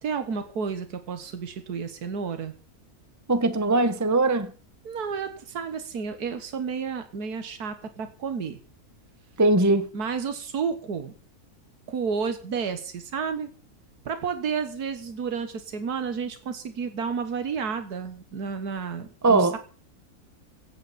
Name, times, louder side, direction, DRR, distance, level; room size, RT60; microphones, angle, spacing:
voice 1, 0.0-2.5 4.8-8.6 9.9-11.1 11.9-13.5 14.1-19.6, right 6 dB, 85° right, 1.9 m, -31 dB
voice 2, 3.3-4.5 9.4-9.9 19.2-19.6, right 2 dB, 15° right, 1.0 m, -20 dB
16.0 x 15.0 x 4.3 m
omnidirectional pair, 1.6 m